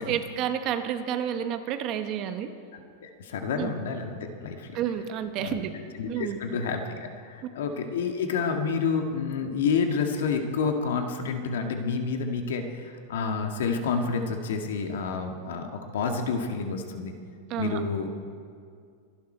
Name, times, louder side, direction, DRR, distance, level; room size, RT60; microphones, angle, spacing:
voice 1, 0.0-2.5 3.6-3.7 4.7-5.7 6.1-6.4 17.5-17.8, right 9 dB, 35° right, 9 dB, 0.9 m, -30 dB
voice 2, 2.7-4.8 5.4-5.6 6.0-6.8 7.2-17.1 17.6-18.1, left 5 dB, 80° left, 4 dB, 1.8 m, -29 dB
24.5 x 11.0 x 4.5 m, 2.2 s
supercardioid pair, 160°, 0 cm